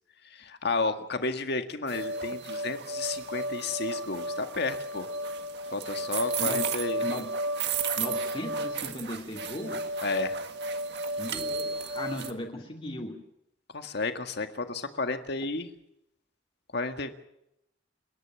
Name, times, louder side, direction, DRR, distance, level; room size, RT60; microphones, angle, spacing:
voice 1, 0.3-5.1 5.7-7.0 10.0-10.4 13.7-15.7 16.7-17.3, left 3 dB, 60° left, 7 dB, 1.8 m, -32 dB
sound 1, 1.9-12.3, right 2 dB, 60° right, 1.8 m, -33 dB
voice 2, 6.4-6.7 7.0-7.3 8.0-9.8 11.2-13.2, left 1 dB, 30° left, 1 dB, 2.7 m, -37 dB
29.5 x 11.0 x 9.0 m, 0.81 s
head